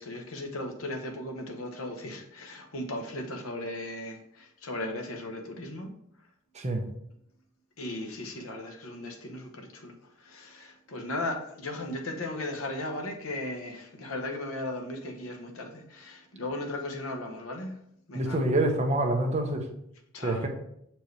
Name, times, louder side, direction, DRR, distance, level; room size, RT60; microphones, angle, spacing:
voice 1, 0.0-6.0 7.8-17.8 18.1-18.4 20.1-20.5, left 1 dB, 85° left, 4 dB, 1.0 m, -37 dB
voice 2, 18.1-19.7 20.2-20.5, right 1 dB, 35° right, 2 dB, 0.9 m, -26 dB
6.7 x 4.4 x 3.2 m, 0.73 s
head